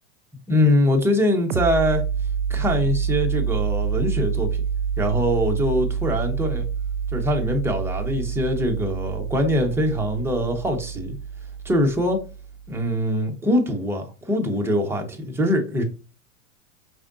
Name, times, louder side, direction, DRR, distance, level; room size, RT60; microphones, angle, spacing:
voice 1, 0.3-2.0 2.5-4.6 5.0-6.7 7.1-11.2 11.6-12.2 12.7-15.8, left 1 dB, 5° right, 0.8 m, -23 dB
sound 1, 1.5-12.8, right 7 dB, 75° right, 0.5 m, -27 dB
5.0 x 3.5 x 2.6 m
hypercardioid pair, 115°, 39 cm